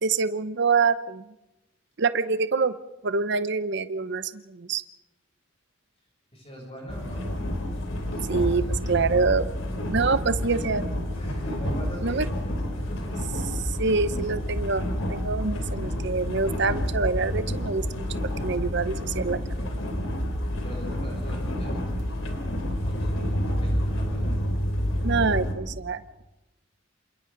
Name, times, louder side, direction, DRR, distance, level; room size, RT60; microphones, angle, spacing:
voice 1, 0.0-1.3 2.0-2.8 3.0-4.8 8.3-9.5 9.9-10.8 12.0-12.3 13.5-19.7 25.0-26.2, right 4 dB, 60° right, 12 dB, 0.8 m, -26 dB
voice 2, 6.3-7.3 8.0-8.4 10.3-13.1 20.6-22.1 22.6-23.2 23.5-24.4, equal, 30° left, -2 dB, 7.4 m, -41 dB
sound 1, 6.9-25.5, equal, 70° left, 3.4 m, -29 dB
28.5 x 27.5 x 3.9 m, 0.96 s
head